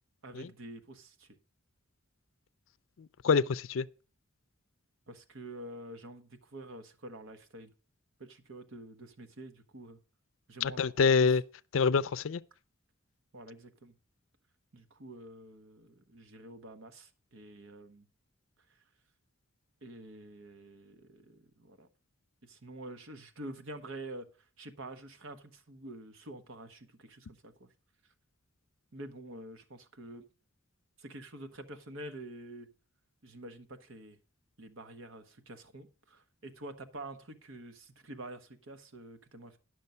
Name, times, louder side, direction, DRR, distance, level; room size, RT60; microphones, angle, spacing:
voice 1, 0.2-1.3 5.1-7.7 8.2-10.0 10.5-11.4 13.3-13.9 14.7-18.1 19.8-21.9 22.4-24.3 24.6-27.7 28.9-30.2 31.0-32.7 33.2-34.2 34.6-39.6, right 1 dB, 75° right, 1.2 m, -47 dB
voice 2, 3.0-3.9 10.6-11.4 11.7-12.4, left 5 dB, 75° left, 0.4 m, -26 dB
10.5 x 6.4 x 5.4 m
head